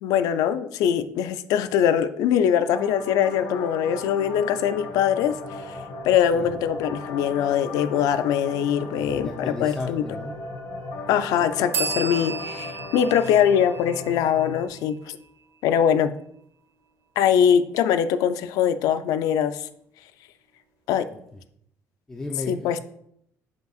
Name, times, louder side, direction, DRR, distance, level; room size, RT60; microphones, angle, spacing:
voice 1, 0.0-5.8 6.0-10.0 11.1-15.2 15.6-16.1 17.2-19.7 20.9-21.1 22.5-22.8, left 9 dB, 85° left, 12 dB, 0.4 m, -22 dB
sound 1, 2.7-14.7, left 2 dB, 65° left, 1.9 m, -37 dB
voice 2, 8.9-10.4 21.1-21.4 22.1-22.8, left 2 dB, 10° left, 1 dB, 0.4 m, -35 dB
sound 2, 11.7-15.3, right 5 dB, 50° right, 0.9 m, -33 dB
9.1 x 5.2 x 2.4 m, 0.72 s
cardioid pair, 170°, 6 cm